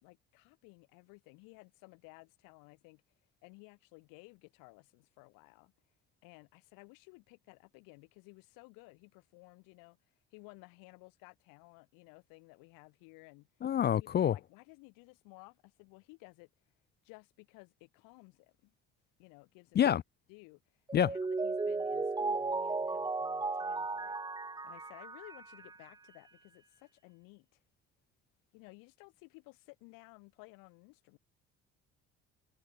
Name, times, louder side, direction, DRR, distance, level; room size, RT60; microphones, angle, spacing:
voice 1, 0.0-3.0 3.4-5.7 6.2-10.0 10.3-13.5 14.0-16.5 17.0-18.7 19.2-19.8 20.3-20.6 20.9-24.2 24.6-27.6 28.5-31.2, left 28 dB, 80° left, 5.0 m, -56 dB
voice 2, 13.6-14.3 19.8-20.0 20.9-21.1, left 10 dB, 30° left, 0.4 m, -27 dB
Mallet percussion, 20.9-25.9, right 3 dB, 10° right, 0.6 m, -35 dB
hypercardioid pair, 65°, 33 cm